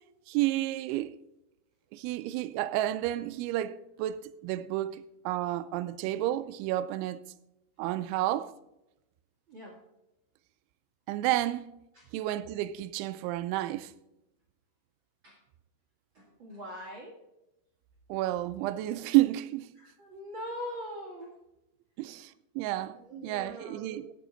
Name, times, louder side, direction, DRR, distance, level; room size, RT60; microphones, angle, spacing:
voice 1, 0.3-1.2 1.9-7.2 7.8-8.5 11.1-11.7 12.1-13.9 18.1-19.7 22.0-24.1, right 15 dB, 85° right, 2.9 m, -31 dB
voice 2, 16.1-17.2 19.7-21.3 22.9-23.9, equal, 55° right, 1.3 m, -42 dB
16.0 x 6.9 x 3.9 m
omnidirectional pair, 5.5 m